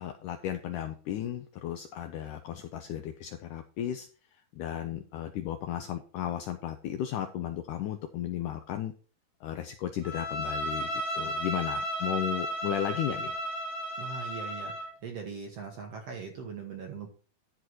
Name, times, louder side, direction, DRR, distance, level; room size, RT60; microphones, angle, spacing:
voice 1, 0.0-8.9 9.4-13.4, left 11 dB, 80° left, 7 dB, 1.8 m, -35 dB
Bowed string instrument, 10.0-14.9, equal, 45° right, 3.9 m, -34 dB
voice 2, 14.0-17.1, right 5 dB, 60° right, 3 dB, 1.7 m, -41 dB
11.5 x 4.7 x 6.0 m, 0.39 s
omnidirectional pair, 4.3 m